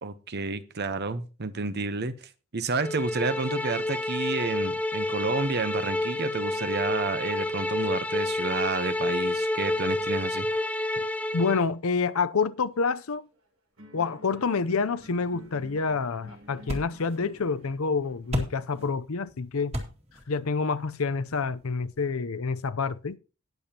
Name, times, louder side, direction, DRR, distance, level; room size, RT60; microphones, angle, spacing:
voice 1, 0.0-10.5, right 3 dB, 45° right, 0.9 m, -30 dB
sound 1, 2.8-11.6, left 1 dB, 5° left, 0.5 m, -29 dB
voice 2, 11.3-13.3 13.9-19.7 20.3-23.2, left 4 dB, 70° left, 0.6 m, -28 dB
sound 2, 12.7-13.4 13.8-18.9, equal, 75° right, 7.7 m, -52 dB
sound 3, 15.0-22.1, equal, 30° right, 2.3 m, -40 dB
19.0 x 7.0 x 2.9 m
head